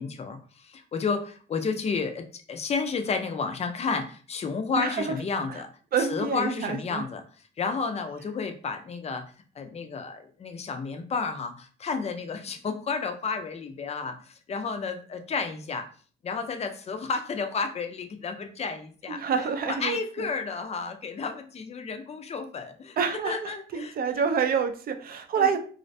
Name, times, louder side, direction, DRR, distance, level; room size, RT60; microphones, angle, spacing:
voice 1, 0.0-5.7 6.0-7.2 7.6-9.2 9.6-15.9 16.2-23.0 23.2-23.9 25.4-25.5, left 5 dB, 30° left, 6 dB, 0.4 m, -31 dB
voice 2, 4.8-5.2 5.5-5.6 5.9-7.0 19.1-20.3 23.0-25.6, right 6 dB, 50° right, 8 dB, 0.4 m, -28 dB
2.4 x 2.1 x 2.6 m, 0.42 s
cardioid pair, 90°, 20 cm